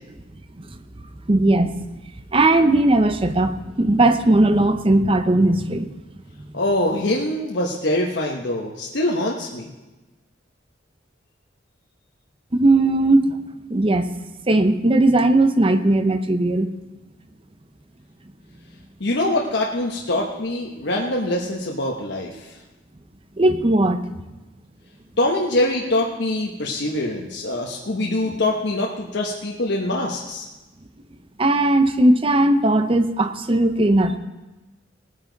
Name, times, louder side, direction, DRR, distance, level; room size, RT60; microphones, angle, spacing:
voice 1, 1.3-1.7 2.3-5.9 12.5-13.4 13.7-14.1 14.5-16.7 23.4-24.0 31.4-34.2, right 2 dB, 30° right, 9 dB, 0.7 m, -18 dB
voice 2, 6.5-9.7 19.0-22.4 25.2-30.5, left 1 dB, 65° left, -1 dB, 1.1 m, -24 dB
18.5 x 9.7 x 4.0 m, 1.1 s
head